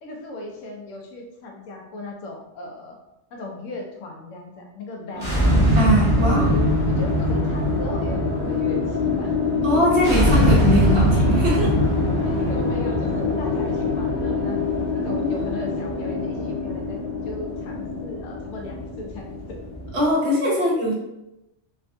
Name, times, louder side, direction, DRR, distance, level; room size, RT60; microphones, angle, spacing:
voice 1, 0.0-3.0 3.3-5.4 6.2-9.4 12.2-19.6, left 2 dB, 85° left, 1 dB, 1.0 m, -37 dB
sound 1, 5.1-20.1, left 1 dB, 50° left, 1.0 m, -22 dB
voice 2, 5.8-6.5 9.6-11.7 15.1-15.5 19.9-20.9, equal, 65° right, -4 dB, 1.1 m, -22 dB
3.3 x 2.2 x 2.6 m, 0.92 s
omnidirectional pair, 1.3 m